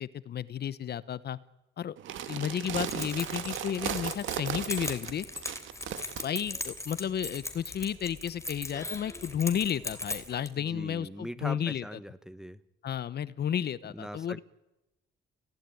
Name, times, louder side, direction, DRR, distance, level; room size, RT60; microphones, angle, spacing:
voice 1, 0.0-1.4 1.8-2.0 2.3-5.3 6.2-11.8 12.8-14.4, left 9 dB, 55° left, 17 dB, 0.9 m, -32 dB
sound 1, 2.0-6.2, right 10 dB, 80° right, 2.1 m, -36 dB
Keys jangling, 2.6-10.5, left 2 dB, 15° left, 3.6 m, -39 dB
voice 2, 10.6-12.6 13.9-14.4, equal, 5° right, 15 dB, 1.1 m, -41 dB
29.5 x 17.0 x 9.2 m, 0.98 s
cardioid pair, 90°, 20 cm